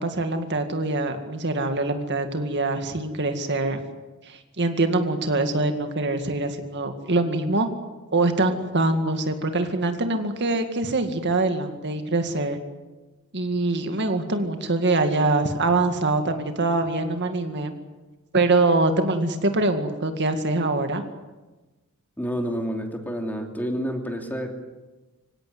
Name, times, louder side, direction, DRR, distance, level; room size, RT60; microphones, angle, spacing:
voice 1, 0.0-3.8 4.3-7.7 8.1-12.6 13.3-17.7 18.3-21.0, right 2 dB, 55° right, 6 dB, 2.0 m, -24 dB
voice 2, 22.2-24.6, equal, 10° left, 3 dB, 2.9 m, -29 dB
25.5 x 17.0 x 9.6 m, 1.2 s
head